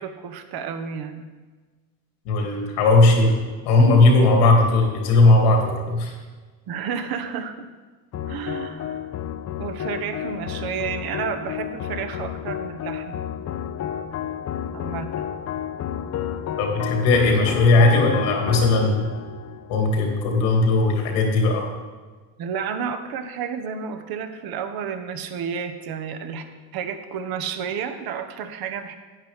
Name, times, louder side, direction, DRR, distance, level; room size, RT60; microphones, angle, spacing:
voice 1, 0.0-1.3 6.7-7.7 8.3-9.0 9.6-13.2 14.7-15.4 22.4-26.4 26.7-29.0, right 7 dB, 55° right, 7 dB, 1.1 m, -31 dB
voice 2, 2.2-3.4 3.6-6.1 16.6-19.1 19.7-21.7, left 2 dB, 85° left, 1 dB, 2.5 m, -18 dB
sound 1, 8.1-20.6, left 9 dB, 40° left, 0.5 m, -31 dB
10.5 x 9.2 x 3.6 m, 1.4 s
supercardioid pair, 95°, 43 cm